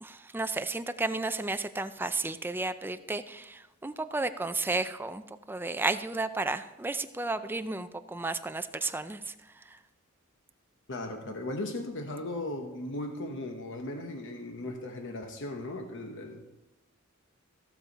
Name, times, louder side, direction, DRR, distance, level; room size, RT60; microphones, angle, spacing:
voice 1, 0.0-9.8, right 3 dB, 10° right, 10 dB, 0.4 m, -33 dB
voice 2, 10.9-16.4, left 1 dB, 60° left, 4 dB, 0.9 m, -37 dB
15.0 x 7.2 x 4.1 m, 1.0 s
head